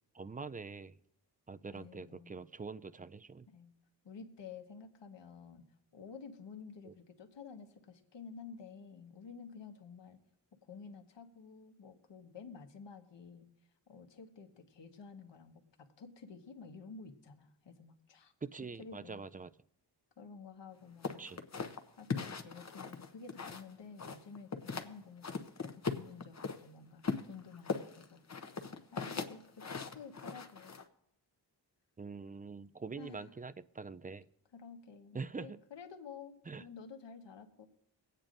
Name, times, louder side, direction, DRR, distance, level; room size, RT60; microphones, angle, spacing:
voice 1, 0.1-1.0 1.5-3.5 6.8-6.9 18.4-19.5 21.2-21.4 32.0-34.3 35.1-35.6 36.5-36.7, right 4 dB, 20° right, 14 dB, 0.4 m, -44 dB
voice 2, 1.7-2.4 3.5-3.7 4.0-5.6 5.9-10.2 10.6-13.5 13.9-18.3 18.8-19.2 20.2-21.5 22.0-25.4 25.8-28.2 28.9-30.8 33.0-33.3 34.5-37.7, left 5 dB, 75° left, 4 dB, 1.3 m, -51 dB
sound 1, 21.0-23.7 24.0-24.9 25.2-26.6 27.0-30.8, left 5 dB, 40° left, 0.9 m, -39 dB
22.5 x 8.9 x 2.6 m, 0.78 s
cardioid pair, 70°, 44 cm